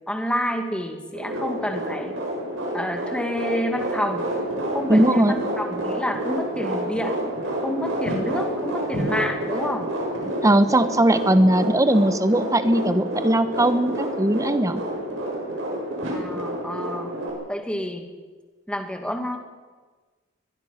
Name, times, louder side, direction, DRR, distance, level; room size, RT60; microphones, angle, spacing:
voice 1, 0.1-2.2 2.7-4.2 4.7-7.2 7.6-9.9 16.1-17.1 17.5-18.1 18.7-19.4, equal, 5° left, 4 dB, 2.3 m, -28 dB
sound 1, 1.1-17.3, right 1 dB, 65° right, 7.2 m, -29 dB
voice 2, 4.9-5.4 10.4-14.8, right 1 dB, 15° right, 11 dB, 1.1 m, -19 dB
22.0 x 22.0 x 5.9 m, 1.3 s
head